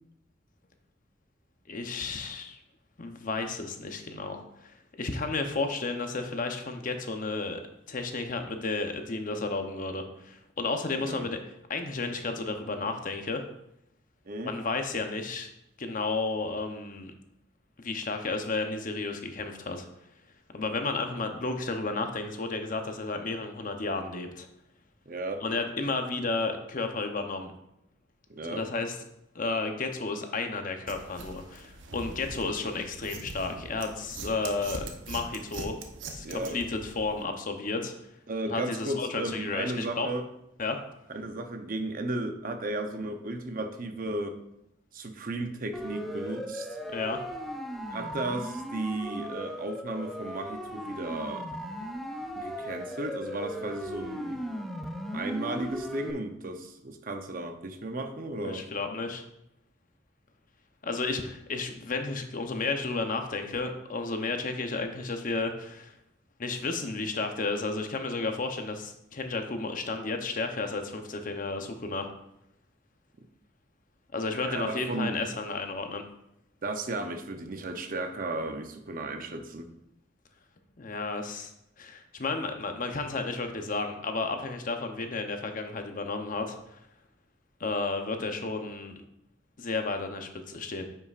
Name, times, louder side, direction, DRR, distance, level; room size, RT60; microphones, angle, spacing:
voice 1, 1.7-2.6 3.0-7.6 7.9-11.4 11.7-13.5 14.4-15.5 15.8-17.1 17.8-19.9 20.5-24.5 25.4-27.5 28.4-29.0 29.3-35.8 36.1-37.9 38.5-40.1 40.6-40.8 46.9-47.2 58.4-59.2 60.8-65.9 66.4-72.1 74.1-76.0 80.8-81.5 81.8-86.8 87.6-89.0 89.6-90.9, left 3 dB, 45° left, 6 dB, 0.8 m, -32 dB
voice 2, 11.0-11.3 14.3-14.5 25.1-25.4 28.3-28.6 36.2-36.6 38.3-40.2 41.1-44.4 44.9-46.7 47.9-51.5 52.4-54.5 55.1-58.7 74.4-75.2 76.6-79.7, right 2 dB, 50° right, 6 dB, 0.7 m, -34 dB
sound 1, 30.9-37.2, right 3 dB, 80° right, 0.8 m, -42 dB
Siren, 45.7-56.1, equal, ahead, 0.5 m, -37 dB
9.5 x 5.6 x 2.5 m, 0.82 s
head